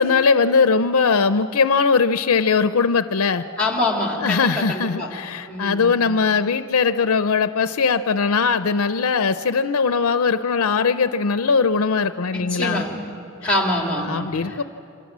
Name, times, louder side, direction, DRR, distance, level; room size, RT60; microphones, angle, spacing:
voice 1, 0.0-3.4 4.2-12.8 13.4-13.6 14.0-14.6, left 5 dB, 85° left, 11 dB, 0.6 m, -20 dB
voice 2, 3.6-5.1 5.5-5.9 12.3-13.0 13.4-14.6, left 2 dB, 5° left, 1 dB, 3.2 m, -25 dB
27.5 x 26.0 x 7.4 m, 2.7 s
head